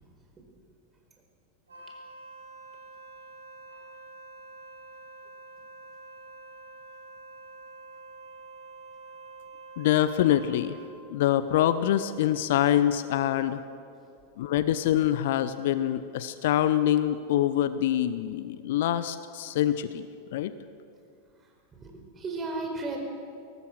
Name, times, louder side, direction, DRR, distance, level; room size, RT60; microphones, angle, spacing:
Wind instrument woodwind instrument, 1.7-11.0, right 3 dB, 75° right, 6.9 m, -47 dB
voice 1, 9.8-10.8 11.1-13.6 14.4-20.1 20.3-20.5, left 11 dB, 55° left, 13 dB, 0.8 m, -25 dB
voice 2, 21.4-23.0, right 3 dB, 20° right, 2 dB, 4.7 m, -36 dB
22.5 x 18.5 x 6.4 m, 2.4 s
figure-of-eight pair, 90°, 0 cm